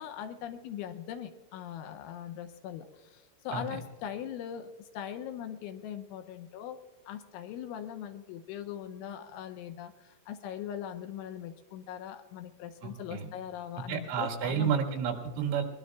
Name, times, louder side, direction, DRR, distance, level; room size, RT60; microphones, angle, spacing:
voice 1, 0.0-6.8 7.1-14.8, left 9 dB, 80° left, 8 dB, 2.9 m, -41 dB
voice 2, 12.8-13.3 13.8-15.6, right 7 dB, 80° right, 1 dB, 4.1 m, -31 dB
22.0 x 21.0 x 2.3 m, 1.5 s
omnidirectional pair, 5.8 m